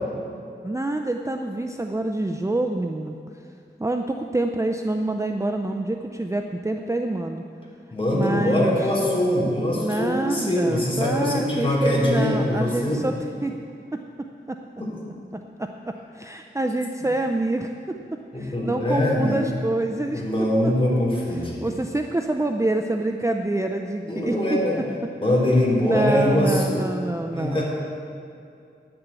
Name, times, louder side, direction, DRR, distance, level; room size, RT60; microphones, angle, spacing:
voice 1, 0.6-3.2 3.8-7.4 8.1-8.9 9.7-13.1 13.4-13.5 13.9-14.0 14.5-14.6 15.6-18.0 18.4-20.3 20.6-21.0 21.6-24.6 25.8-27.6, right 2 dB, 15° right, 4 dB, 0.5 m, -26 dB
voice 2, 7.9-13.0 14.8-14.9 18.3-19.4 20.1-21.7 24.0-24.8 25.2-26.8 27.3-27.6, left 1 dB, 30° left, -4 dB, 3.1 m, -22 dB
10.0 x 6.9 x 8.1 m, 2.5 s
wide cardioid pair, 65°, 19 cm